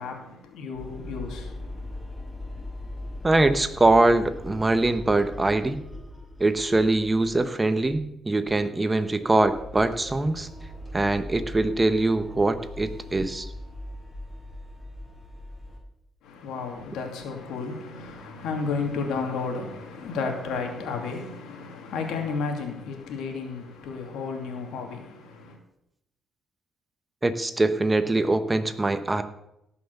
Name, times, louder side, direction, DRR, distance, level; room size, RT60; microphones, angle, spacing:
voice 1, 0.0-1.7 16.2-25.6, left 4 dB, 85° left, 2.6 m, -32 dB
sound 1, 0.7-7.5 7.8-8.1 8.4-8.6 9.0-15.8, left 1 dB, ahead, 5.3 m, -40 dB
voice 2, 3.2-5.8 6.4-10.5 10.9-13.5 27.2-29.2, right 2 dB, 20° right, 1.0 m, -23 dB
17.5 x 5.9 x 6.9 m
cardioid pair, 90°, 0 cm